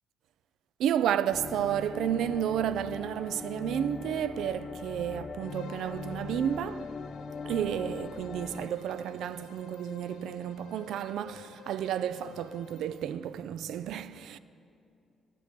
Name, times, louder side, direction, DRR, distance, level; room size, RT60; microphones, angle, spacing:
voice 1, 0.8-7.0 7.4-14.4, right 10 dB, 80° right, 0.3 m, -31 dB
sound 1, 1.3-8.7, left 5 dB, 40° left, 0.3 m, -41 dB
Bowed string instrument, 5.4-13.1, left 8 dB, 80° left, 0.6 m, -52 dB
18.0 x 6.7 x 5.2 m
cardioid pair, 90°, 0 cm